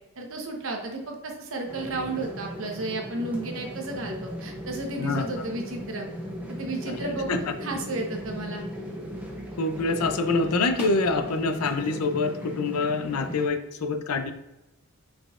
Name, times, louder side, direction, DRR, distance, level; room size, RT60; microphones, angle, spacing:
voice 1, 0.2-6.1 6.5-8.7, right 2 dB, 65° right, 2 dB, 0.9 m, -33 dB
sound 1, 1.7-13.5, equal, 5° right, 0.6 m, -37 dB
voice 2, 6.9-7.5 9.6-14.3, left 3 dB, 90° left, 8 dB, 0.5 m, -26 dB
4.9 x 4.2 x 2.4 m, 0.96 s
head